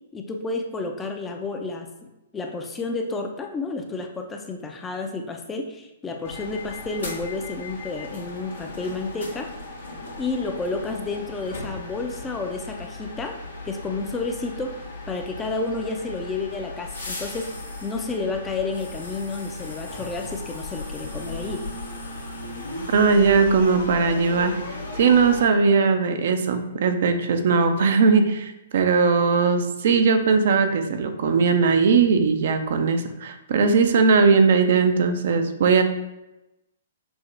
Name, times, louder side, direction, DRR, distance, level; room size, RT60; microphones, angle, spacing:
voice 1, 0.1-9.5 10.2-13.4 13.6-17.5 17.8-21.6, left 3 dB, 15° left, 4 dB, 0.5 m, -31 dB
sound 1, 6.2-25.5, left 2 dB, 85° left, 1.3 m, -36 dB
voice 2, 22.9-24.6 24.9-35.8, right 5 dB, 60° right, 7 dB, 0.5 m, -19 dB
6.0 x 2.1 x 3.2 m, 0.94 s
hypercardioid pair, 125°, 0 cm